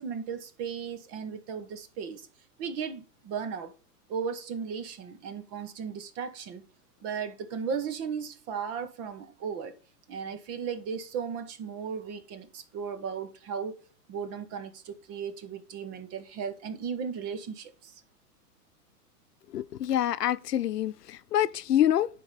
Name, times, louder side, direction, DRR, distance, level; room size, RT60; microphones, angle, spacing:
voice 1, 0.0-2.3 2.6-3.7 4.1-6.6 7.0-9.7 10.1-18.0, right 6 dB, 30° right, 1.2 m, -36 dB
voice 2, 19.5-22.1, left 11 dB, 90° left, 0.7 m, -26 dB
9.8 x 3.9 x 5.0 m
hypercardioid pair, 125°, 46 cm